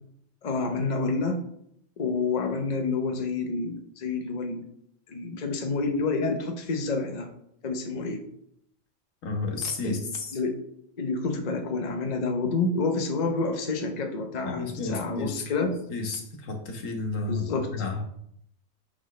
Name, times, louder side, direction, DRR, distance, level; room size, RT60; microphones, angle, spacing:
voice 1, 0.4-1.4 2.0-4.6 5.1-7.3 7.6-8.2 9.8-10.0 10.3-10.6 11.0-15.7 17.3-17.7, left 3 dB, 40° left, 3 dB, 0.8 m, -28 dB
voice 2, 9.2-10.4 14.4-15.4 15.9-18.1, left 3 dB, 85° left, 3 dB, 1.4 m, -32 dB
6.2 x 6.0 x 3.2 m, 0.72 s
omnidirectional pair, 1.3 m